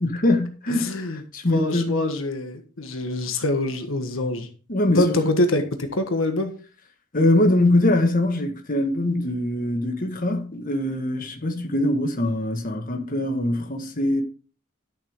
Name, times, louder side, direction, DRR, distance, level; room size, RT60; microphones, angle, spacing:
voice 1, 0.0-2.0 4.7-5.1 7.1-14.2, left 1 dB, 45° left, 1.6 m, -23 dB
voice 2, 0.7-1.2 1.5-4.5 5.0-6.5, left 2 dB, 80° left, 1.4 m, -25 dB
12.0 x 7.3 x 3.7 m
head